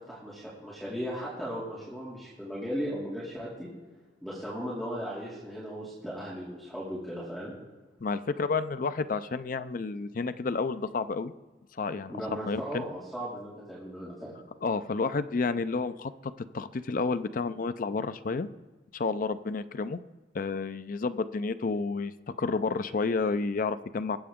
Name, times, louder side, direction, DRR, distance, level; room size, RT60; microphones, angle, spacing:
voice 1, 0.1-3.7 4.2-7.5 12.1-14.3, equal, ahead, -9 dB, 2.6 m, -37 dB
voice 2, 8.0-11.3 11.8-12.1 12.5-12.9 14.6-18.5 18.9-20.0 20.3-22.1 22.4-24.2, left 4 dB, 50° left, 12 dB, 0.5 m, -30 dB
20.5 x 7.7 x 3.6 m, 1.3 s
head